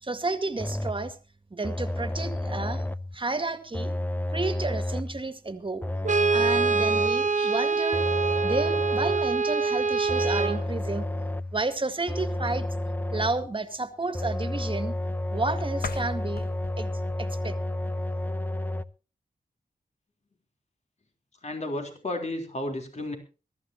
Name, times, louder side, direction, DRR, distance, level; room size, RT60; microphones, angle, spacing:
voice 1, 0.0-1.2 1.5-2.8 3.1-3.9 4.3-5.8 6.3-8.0 8.4-11.1 11.5-12.7 13.1-15.0 15.3-16.5 16.8-16.9 17.2-17.6, right 3 dB, 35° right, 9 dB, 2.0 m, -31 dB
sound 1, 0.6-1.1 1.6-3.2 3.7-5.2 5.8-7.3 7.9-9.4 10.1-11.6 12.1-13.5 14.1-18.8, left 1 dB, 10° left, 0.7 m, -31 dB
Brass instrument, 6.0-10.6, right 4 dB, 55° right, 0.9 m, -25 dB
sound 2, 15.7-18.6, left 6 dB, 80° left, 1.2 m, -43 dB
voice 2, 21.4-23.2, left 1 dB, 50° left, 4 dB, 3.6 m, -32 dB
22.0 x 13.5 x 2.9 m, 0.33 s
wide cardioid pair, 75°, 15 cm